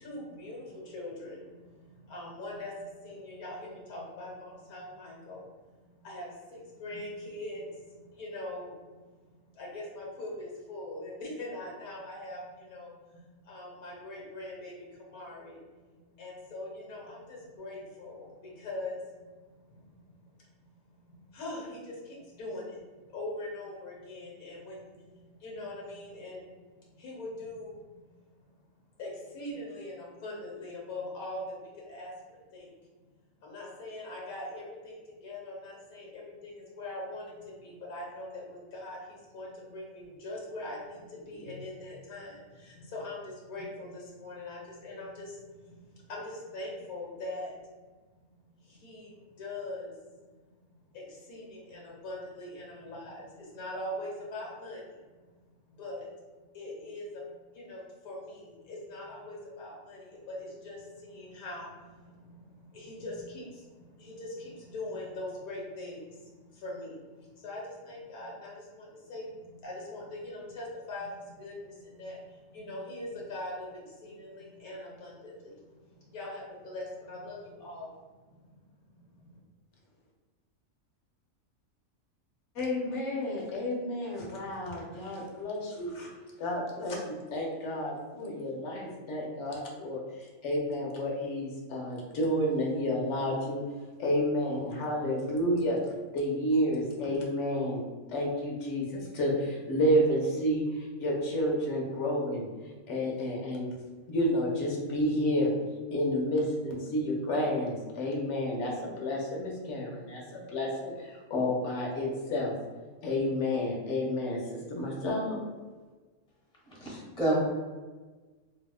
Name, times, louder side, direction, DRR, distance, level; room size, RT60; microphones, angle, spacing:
voice 1, 0.0-5.5 5.8-9.0 9.4-15.6 15.9-19.3 19.7-20.1 20.3-20.4 20.7-20.8 21.1-26.5 26.8-28.4 29.0-32.7 33.4-47.6 48.4-50.1 50.9-55.0 55.7-56.1 56.5-77.9 78.3-79.3, left 1 dB, 85° left, -3 dB, 1.4 m, -42 dB
voice 2, 82.5-86.1 86.4-93.6 94.0-95.8 96.1-97.8 98.1-102.5 102.9-103.7 104.1-105.5 105.9-112.5 113.0-115.4, equal, 65° left, -1 dB, 1.0 m, -30 dB
voice 3, 116.7-117.4, right 1 dB, 5° left, -5 dB, 0.6 m, -29 dB
3.3 x 2.8 x 2.3 m, 1.3 s
omnidirectional pair, 1.4 m